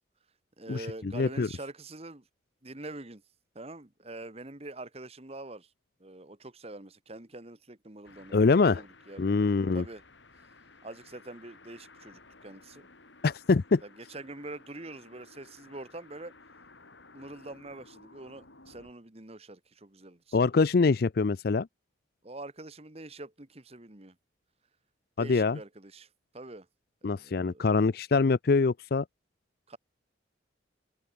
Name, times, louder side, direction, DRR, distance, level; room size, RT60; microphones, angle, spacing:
voice 1, 0.6-2.2 2.6-3.2 3.5-5.7 6.0-8.4 8.7-9.3 9.7-10.0 10.8-12.9 13.8-16.3 17.1-20.4 22.2-24.1 25.2-26.1 26.3-26.7 27.0-27.8 29.7-29.8, right 2 dB, 35° right, 1.6 m, -45 dB
voice 2, 1.1-1.5 8.3-8.8 9.2-9.8 13.2-13.8 20.3-21.7 25.2-25.6 27.0-29.0, left 4 dB, 55° left, 0.5 m, -24 dB
sound 1, 8.0-18.9, left 3 dB, 75° left, 7.2 m, -56 dB
open air
head